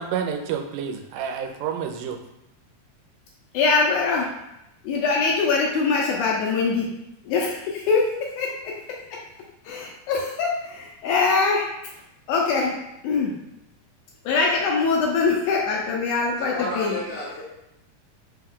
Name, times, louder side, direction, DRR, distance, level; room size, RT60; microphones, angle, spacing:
voice 1, 0.0-2.2, right 7 dB, 90° right, 4 dB, 2.2 m, -29 dB
voice 2, 3.5-4.3 4.8-6.9 7.3-8.1 8.4-8.5 9.7-11.7 12.3-12.7 13.0-13.3 14.3-17.0, left 4 dB, 80° left, -1 dB, 1.8 m, -22 dB
voice 3, 16.4-17.5, left 1 dB, 65° left, -6 dB, 2.3 m, -31 dB
5.2 x 2.3 x 3.6 m, 0.86 s
omnidirectional pair, 3.8 m